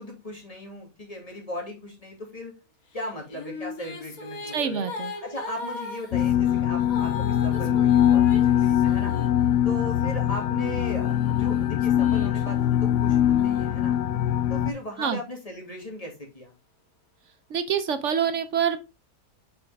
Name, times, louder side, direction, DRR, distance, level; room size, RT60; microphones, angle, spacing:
voice 1, 0.0-2.5 2.9-4.8 5.2-9.1 9.6-14.0 14.5-16.5, left 1 dB, 20° left, 0 dB, 2.3 m, -37 dB
Female singing, 3.0-9.9 10.6-14.3, left 4 dB, 60° left, 2.1 m, -39 dB
voice 2, 4.5-5.1 15.0-15.2 17.5-18.8, right 7 dB, 60° right, 10 dB, 0.9 m, -26 dB
sound 1, 6.1-14.7, left 11 dB, 80° left, 1.2 m, -22 dB
6.6 x 5.4 x 3.4 m, 0.27 s
omnidirectional pair, 1.7 m